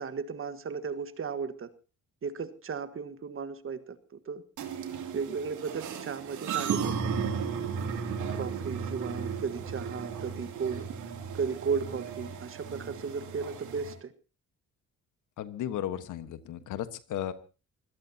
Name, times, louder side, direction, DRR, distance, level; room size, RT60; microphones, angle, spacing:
voice 1, 0.0-1.7 2.2-4.4 5.1-7.1 8.3-10.9 11.3-14.1, right 5 dB, 45° right, 11 dB, 1.5 m, -35 dB
sound 1, 4.6-13.9, right 6 dB, 80° right, 2.9 m, -35 dB
voice 2, 15.4-17.3, left 11 dB, 80° left, 11 dB, 1.4 m, -35 dB
25.5 x 17.0 x 2.9 m, 0.33 s
cardioid pair, 90°, 30 cm